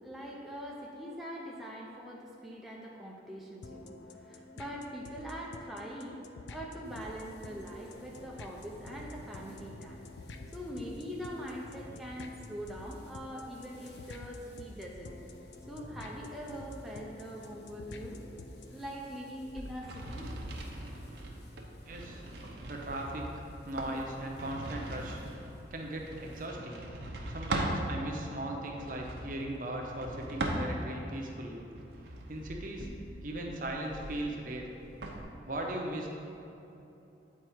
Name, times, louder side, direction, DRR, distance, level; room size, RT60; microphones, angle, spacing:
voice 1, 0.0-10.0 10.5-15.2 15.6-18.2 18.6-20.3 22.0-22.1, equal, ahead, -4 dB, 0.6 m, -43 dB
sound 1, 3.6-18.9, left 2 dB, 85° left, 0.4 m, -49 dB
sound 2, 6.8-26.5, left 1 dB, 65° left, 0.8 m, -54 dB
sound 3, 19.5-27.8 28.6-31.1 31.6-35.2, right 1 dB, 75° right, 0.8 m, -40 dB
voice 2, 21.9-22.2 22.7-25.2 25.7-26.8 27.3-31.6 32.3-32.9 33.2-34.7 35.5-36.1, right 1 dB, 50° right, 0 dB, 0.8 m, -38 dB
8.6 x 4.5 x 4.5 m, 3.0 s
head